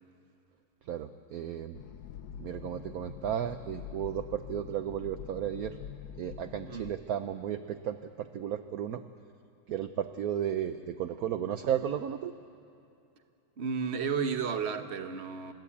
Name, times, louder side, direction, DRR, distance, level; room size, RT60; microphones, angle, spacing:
voice 1, 0.9-1.8 2.4-5.8 6.2-9.0 9.7-12.3, right 9 dB, 65° right, 9 dB, 0.9 m, -34 dB
sound 1, 1.7-6.9, left 9 dB, 70° left, 0.9 m, -45 dB
voice 2, 13.6-15.5, right 6 dB, 40° right, 8 dB, 1.1 m, -32 dB
29.0 x 14.5 x 8.5 m, 2.8 s
omnidirectional pair, 2.2 m